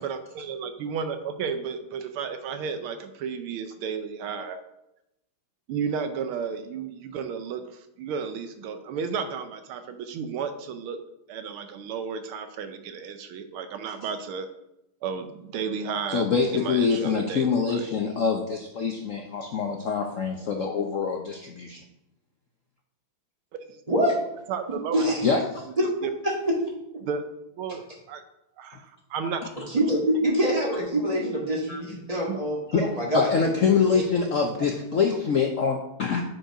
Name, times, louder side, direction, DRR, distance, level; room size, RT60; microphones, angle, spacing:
voice 1, 0.0-4.6 5.7-11.0 11.3-14.5 15.0-16.2 16.5-17.8 23.7-23.8 24.5-25.0 26.0-26.1 27.0-27.2 27.6-28.2 28.6-29.4 32.3-32.4 35.1-35.2, right 6 dB, 75° right, 9 dB, 1.5 m, -33 dB
voice 2, 16.1-21.8 25.2-25.4 31.7-31.8 32.7-32.8 33.1-36.2, left 5 dB, 90° left, 2 dB, 0.7 m, -25 dB
voice 3, 23.9-24.2 24.9-25.3 26.2-26.6 27.7-27.8 29.7-34.0, equal, 15° right, -3 dB, 1.9 m, -25 dB
7.8 x 5.2 x 4.9 m, 0.85 s
omnidirectional pair, 2.4 m